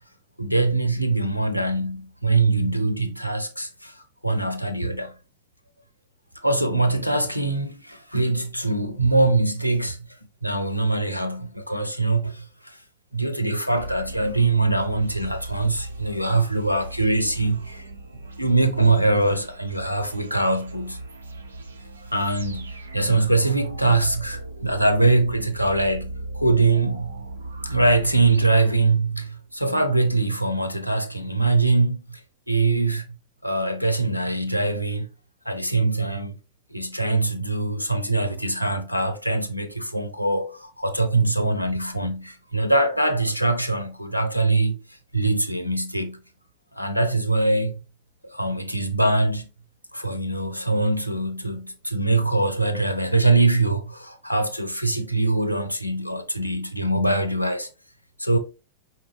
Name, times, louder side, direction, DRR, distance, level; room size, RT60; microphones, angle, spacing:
voice 1, 0.4-5.2 6.4-10.0 10.4-12.8 13.1-17.8 18.4-21.0 22.1-27.2 27.6-32.2 32.5-33.0 33.4-35.1 35.4-36.4 36.7-44.8 45.1-46.2 46.7-47.8 48.2-49.5 49.9-57.7 58.2-58.4, right 2 dB, 90° left, 0.6 m, -23 dB
sound 1, 13.8-29.4, right 2 dB, 75° right, 0.6 m, -38 dB
5.0 x 4.1 x 2.5 m
figure-of-eight pair, 90°, 0 cm